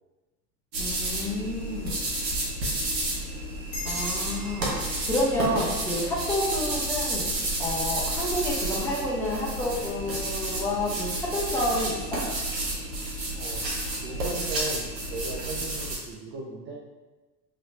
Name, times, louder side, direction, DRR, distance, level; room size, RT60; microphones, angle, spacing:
sound 1, 0.7-16.0, right 1 dB, 85° right, 1.1 m, -30 dB
voice 1, 0.8-2.1 3.8-4.7 5.1-7.3 7.6-12.0, left 1 dB, 5° left, -6 dB, 0.8 m, -29 dB
sound 2, 3.7-6.8, left 2 dB, 45° left, 1.5 m, -41 dB
voice 2, 13.3-13.6 14.0-16.7, right 2 dB, 25° right, -3 dB, 0.4 m, -37 dB
3.2 x 3.0 x 2.7 m, 1.2 s
hypercardioid pair, 85°, 49 cm